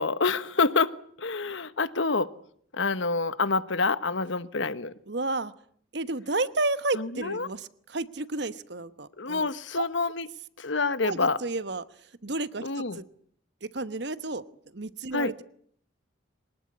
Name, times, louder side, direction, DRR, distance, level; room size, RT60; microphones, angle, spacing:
voice 1, 0.0-2.3 2.7-4.9 7.0-7.5 9.2-10.3 10.6-11.4 12.6-13.0 15.1-15.3, left 4 dB, 75° left, 14 dB, 1.2 m, -27 dB
voice 2, 5.1-5.5 5.9-9.5 9.8-9.9 11.0-11.8 12.2-13.0 13.6-14.4 14.7-15.4, right 2 dB, 60° right, 14 dB, 1.1 m, -31 dB
23.5 x 19.5 x 9.6 m, 0.64 s
head